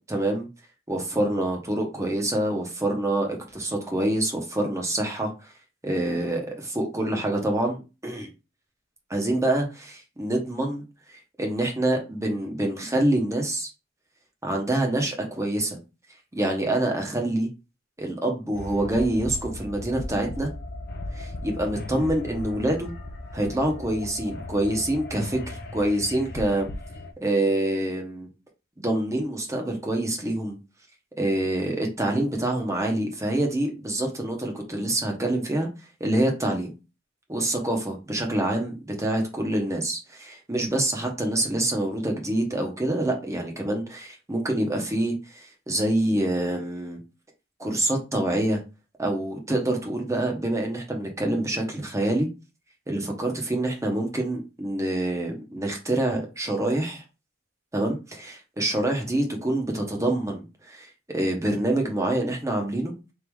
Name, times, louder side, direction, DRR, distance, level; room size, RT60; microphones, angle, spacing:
voice 1, 0.1-0.5 0.9-5.3 5.8-8.3 9.1-10.8 11.4-13.7 14.4-15.8 16.3-17.5 18.0-20.5 21.1-22.9 23.3-26.7 27.2-28.3 28.8-30.6 31.2-35.7 36.0-36.7 37.3-47.0 47.6-48.6 49.0-52.3 52.9-57.0 57.7-62.9, right 1 dB, 15° right, 1.1 m, -26 dB
sound 1, 18.5-27.1, left 2 dB, 55° left, 0.8 m, -37 dB
3.6 x 2.8 x 4.6 m
head